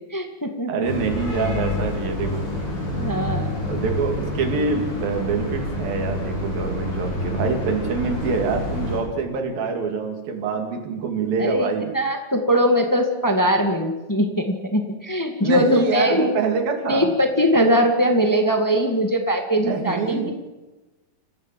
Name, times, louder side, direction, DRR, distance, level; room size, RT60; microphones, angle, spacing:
voice 1, 0.1-0.9 2.9-3.5 11.4-16.3 16.9-20.3, equal, 15° left, 4 dB, 0.6 m, -21 dB
voice 2, 0.7-2.5 3.7-11.9 15.4-17.1 19.6-20.3, right 5 dB, 85° right, 4 dB, 4.2 m, -25 dB
sound 1, 0.8-9.0, left 1 dB, 55° left, 8.4 m, -28 dB
27.5 x 15.0 x 7.5 m, 1.1 s
omnidirectional pair, 4.0 m